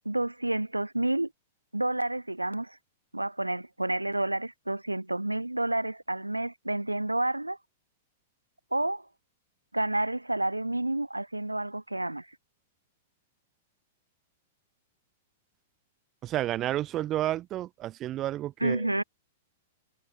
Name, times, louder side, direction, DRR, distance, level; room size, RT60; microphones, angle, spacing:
voice 1, 0.0-1.3 1.7-2.8 3.1-7.6 8.7-9.1 9.7-12.3 18.6-19.0, right 1 dB, 85° right, 0.6 m, -29 dB
voice 2, 16.2-18.9, right 13 dB, 30° right, 0.4 m, -31 dB
figure-of-eight pair, 100°, 0 cm